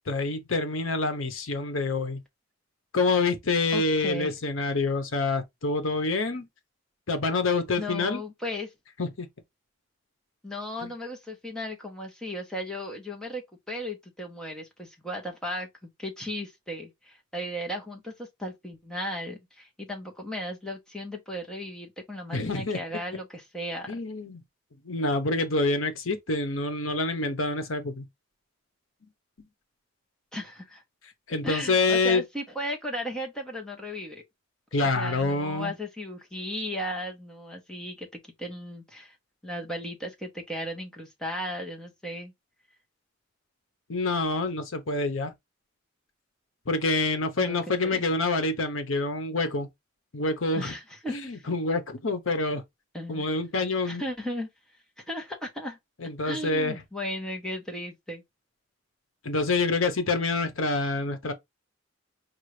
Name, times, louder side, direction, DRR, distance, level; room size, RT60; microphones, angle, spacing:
voice 1, 0.1-2.2 2.9-6.5 7.1-8.2 9.0-9.3 10.8-10.9 22.3-22.8 23.9-24.4 24.8-28.1 31.3-32.2 34.7-35.7 43.9-45.3 46.7-49.7 50.1-50.7 51.1-52.6 53.1-54.0 56.0-56.8 59.2-61.3, left 3 dB, 75° left, 0.9 m, -27 dB
voice 2, 3.7-4.3 7.8-8.7 10.4-24.0 30.3-30.8 31.4-34.2 34.8-39.2 39.4-42.3 47.4-47.6 47.8-48.0 50.6-51.5 52.9-53.3 53.8-54.5 55.0-55.8 56.2-58.2, equal, 5° left, 0.9 m, -36 dB
5.3 x 2.4 x 3.2 m
head